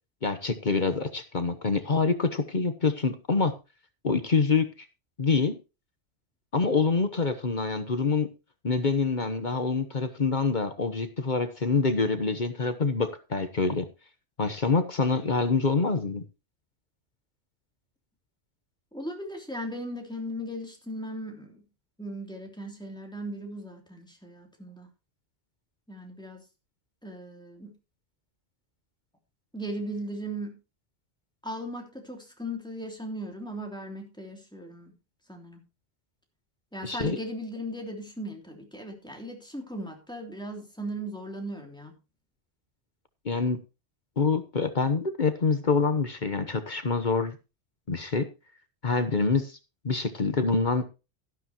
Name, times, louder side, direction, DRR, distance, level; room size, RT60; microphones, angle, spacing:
voice 1, 0.2-3.5 4.0-4.7 5.2-5.5 6.5-8.3 8.6-13.8 14.4-16.2 36.8-37.2 43.2-43.6 44.2-47.4 47.9-48.3 48.8-49.6 49.8-50.8, left 4 dB, 45° left, 9 dB, 1.2 m, -26 dB
voice 2, 18.9-21.6 22.0-24.9 25.9-26.4 27.0-27.7 29.5-30.5 31.4-34.9 35.3-35.6 36.7-42.0, equal, 5° left, 1 dB, 3.0 m, -37 dB
12.5 x 11.5 x 2.9 m, 0.29 s
omnidirectional pair, 1.2 m